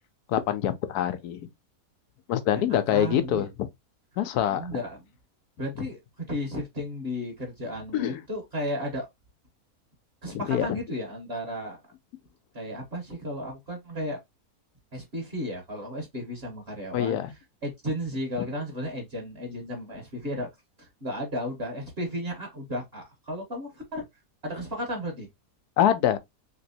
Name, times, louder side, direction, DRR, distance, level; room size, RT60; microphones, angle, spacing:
voice 1, 0.3-1.5 2.3-3.5 4.2-4.7 7.9-8.2 10.3-10.7 16.9-17.3 25.8-26.2, left 10 dB, 85° left, 1.1 m, -25 dB
voice 2, 2.5-3.5 4.5-5.0 5.6-9.0 10.2-11.8 12.5-14.2 14.9-17.2 17.6-20.5 20.8-24.0 24.4-25.3, equal, 45° right, 1.3 m, -34 dB
3.3 x 3.0 x 2.7 m
omnidirectional pair, 1.6 m